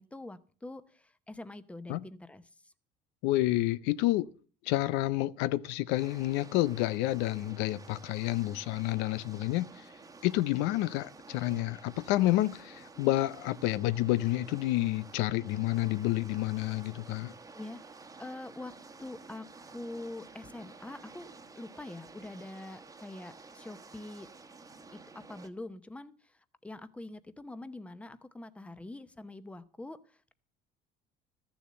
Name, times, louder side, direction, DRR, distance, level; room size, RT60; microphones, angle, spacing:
voice 1, 0.0-2.7 12.9-13.1 17.5-17.8 18.2-18.7 19.0-21.3 21.6-24.3 24.9-30.3, left 2 dB, 5° left, 0.8 m, -45 dB
voice 2, 3.2-4.3 4.7-9.7 10.2-17.3, left 16 dB, 85° left, 0.6 m, -29 dB
sound 1, 5.9-25.5, right 3 dB, 20° right, 1.2 m, -51 dB
13.5 x 7.1 x 7.5 m
cardioid pair, 120°, 18 cm